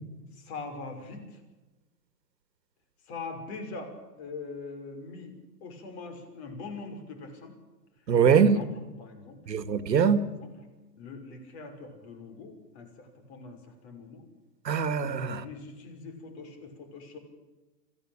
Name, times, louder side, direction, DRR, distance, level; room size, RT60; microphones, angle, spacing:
voice 1, 0.3-1.4 3.1-5.3 5.6-7.5 8.3-8.7 9.0-9.4 10.4-10.5 11.0-14.2 15.0-17.2, left 3 dB, 40° left, 5.8 m, -42 dB
voice 2, 8.1-8.6 9.5-10.2 14.7-15.4, right 6 dB, 80° right, 2.2 m, -22 dB
25.5 x 16.0 x 8.9 m
hypercardioid pair, 150°, 49 cm